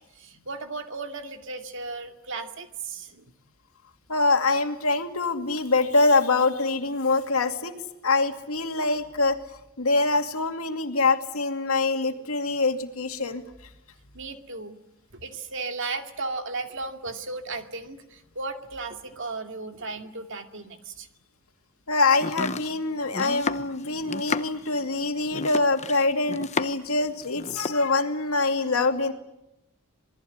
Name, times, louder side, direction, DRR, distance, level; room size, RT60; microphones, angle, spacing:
voice 1, 0.1-3.2 14.1-14.8 15.1-21.1, right 3 dB, 60° right, 6 dB, 2.4 m, -35 dB
voice 2, 4.1-7.7 8.0-9.4 9.8-13.4 21.9-29.1, left 3 dB, 75° left, 6 dB, 2.4 m, -24 dB
Domestic sounds home sounds, 22.1-26.9 27.2-27.8, left 4 dB, 30° left, 0.9 m, -32 dB
26.5 x 20.0 x 9.5 m, 0.89 s
head